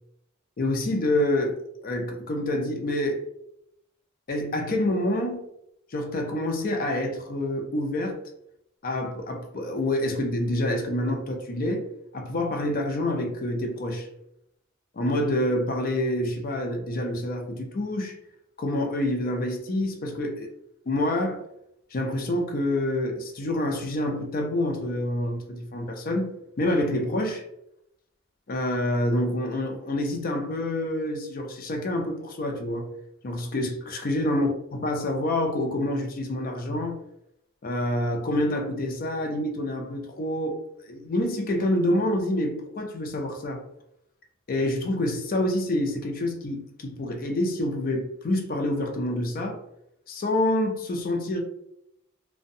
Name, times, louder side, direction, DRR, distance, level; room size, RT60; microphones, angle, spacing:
voice 1, 0.6-3.2 4.3-5.4 5.9-8.2 8.8-11.8 12.1-14.1 14.9-18.2 18.6-20.5 20.9-21.4 21.9-26.3 26.6-27.5 28.5-32.9 33.2-37.0 37.6-40.6 40.9-43.6 44.5-49.6 50.1-51.4, left 1 dB, 40° left, 0.4 m, -27 dB
2.5 x 2.1 x 2.6 m
head